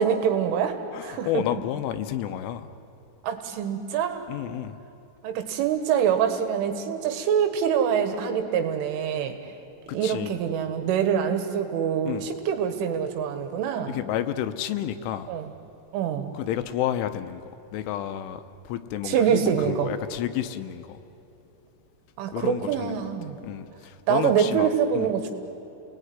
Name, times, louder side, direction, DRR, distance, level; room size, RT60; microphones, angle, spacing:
voice 1, 0.0-1.4 3.2-4.3 5.2-9.4 9.9-13.9 15.3-15.5 15.9-16.4 19.1-19.9 22.2-23.4 24.1-25.3, right 8 dB, 75° right, 7 dB, 4.2 m, -25 dB
voice 2, 0.9-2.7 4.3-4.8 9.9-10.4 12.1-12.3 13.9-15.3 16.3-21.0 22.3-23.0 23.4-25.1, left 11 dB, 80° left, 9 dB, 3.3 m, -31 dB
30.0 x 20.0 x 9.6 m, 2.9 s
omnidirectional pair, 5.7 m